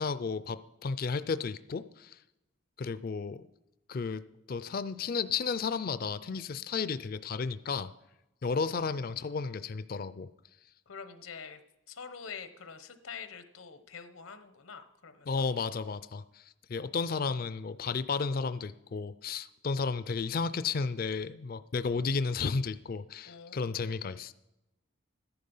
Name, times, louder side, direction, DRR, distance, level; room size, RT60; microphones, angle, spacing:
voice 1, 0.0-2.2 2.8-3.5 3.9-7.9 8.4-10.3 15.3-24.3, left 5 dB, 45° left, 13 dB, 0.4 m, -33 dB
voice 2, 10.9-11.6 11.9-15.5 23.2-23.8, left 6 dB, 85° left, 10 dB, 1.0 m, -46 dB
13.5 x 10.5 x 5.5 m, 0.96 s
head